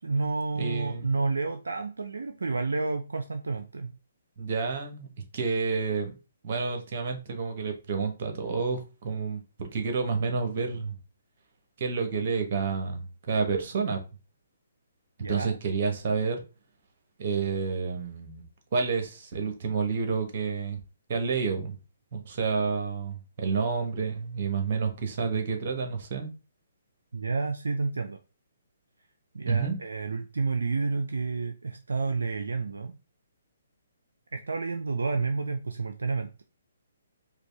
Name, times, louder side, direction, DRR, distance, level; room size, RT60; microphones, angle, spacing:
voice 1, 0.0-3.9 15.2-15.6 27.1-28.2 29.3-33.0 34.3-36.4, right 4 dB, 75° right, 0.4 m, -30 dB
voice 2, 0.5-1.2 4.4-6.1 6.4-11.0 11.8-14.0 15.3-16.4 17.2-18.4 18.7-20.8 21.1-21.8 22.1-26.3 29.4-29.8, right 5 dB, 45° right, 1.2 m, -29 dB
4.9 x 2.3 x 3.3 m
figure-of-eight pair, 130°, 0 cm